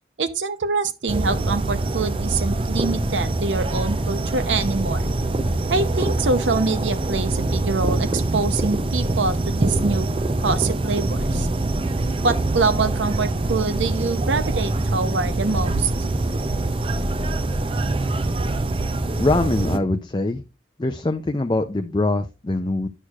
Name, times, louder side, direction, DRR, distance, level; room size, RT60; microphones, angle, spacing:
voice 1, 0.2-5.1 5.7-10.1 10.4-11.5 12.2-16.1, right 4 dB, 85° right, 0.7 m, -25 dB
sound 1, 1.1-19.8, right 2 dB, 30° right, 0.5 m, -24 dB
voice 2, 19.2-20.4 20.8-22.9, left 2 dB, 25° left, 0.4 m, -23 dB
10.0 x 6.4 x 2.3 m
head